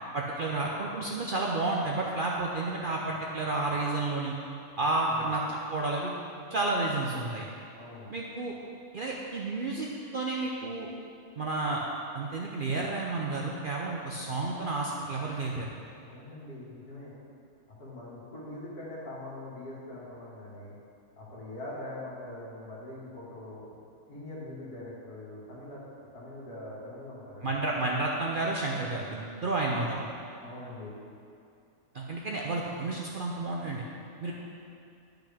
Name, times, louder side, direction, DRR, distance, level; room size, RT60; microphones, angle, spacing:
voice 1, 0.1-4.3 4.8-6.1 6.5-7.5 8.1-8.6 8.9-9.9 10.1-10.9 11.4-11.8 12.1-15.7 27.4-30.1 31.9-33.8 34.2-34.3, right 2 dB, 55° right, -2 dB, 0.6 m, -31 dB
voice 2, 5.0-5.3 7.8-8.1 16.0-17.1 17.8-20.7 21.2-23.7 24.1-25.8 26.1-27.6 30.4-31.0, left 1 dB, 85° left, -7 dB, 2.4 m, -43 dB
10.5 x 5.9 x 3.5 m, 2.5 s
omnidirectional pair, 1.6 m